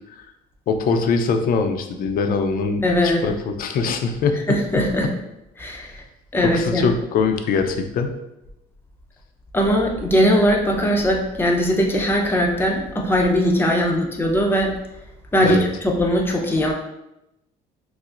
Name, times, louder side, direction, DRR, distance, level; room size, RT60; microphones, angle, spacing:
voice 1, 0.7-4.8 6.4-8.1 15.4-15.6, left 5 dB, 60° left, 6 dB, 0.5 m, -22 dB
voice 2, 2.8-3.2 4.5-5.1 5.6-6.0 6.3-6.8 9.5-14.7 15.3-16.7, equal, 15° left, -1 dB, 0.6 m, -20 dB
5.8 x 2.0 x 2.5 m, 0.89 s
cardioid pair, 110°, 17 cm